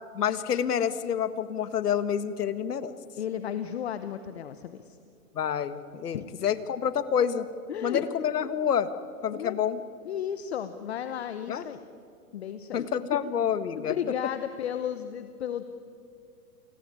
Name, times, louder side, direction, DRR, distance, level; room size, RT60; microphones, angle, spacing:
voice 1, 0.1-3.0 5.4-7.5 7.8-8.9 9.2-9.8 11.5-11.7 12.7-13.9, left 8 dB, 85° left, 12 dB, 1.7 m, -28 dB
voice 2, 3.2-5.0 6.1-6.3 7.7-8.1 9.3-9.6 10.0-11.8 12.3-12.9 13.7-15.6, left 9 dB, 45° left, 10 dB, 1.0 m, -34 dB
28.5 x 19.0 x 10.0 m, 2.4 s
hypercardioid pair, 170°, 45 cm